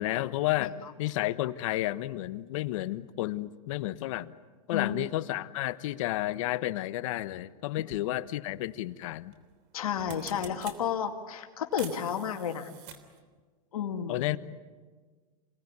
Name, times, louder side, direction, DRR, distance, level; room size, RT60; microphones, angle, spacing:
voice 1, 0.0-4.3 4.7-9.3 14.1-14.4, left 16 dB, 65° left, 13 dB, 1.2 m, -31 dB
sound 1, 7.9-8.0 9.3-9.5 9.8-10.8 11.7-13.2, right 8 dB, 50° right, 3.3 m, -46 dB
voice 2, 9.7-12.7 13.7-14.4, left 8 dB, 85° left, 4 dB, 2.4 m, -32 dB
28.0 x 19.0 x 9.8 m, 1.5 s
supercardioid pair, 130°, 18 cm